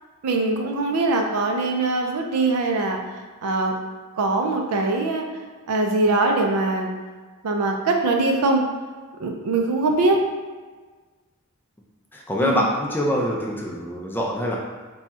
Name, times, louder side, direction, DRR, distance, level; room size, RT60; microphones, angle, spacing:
voice 1, 0.2-3.0 3.4-3.7 4.2-5.2 5.7-6.9 7.4-8.6 9.2-10.2 12.4-12.7, right 2 dB, 90° right, 3 dB, 0.5 m, -22 dB
voice 2, 12.1-14.6, equal, 10° left, -2 dB, 0.4 m, -24 dB
2.7 x 2.3 x 4.1 m, 1.4 s
head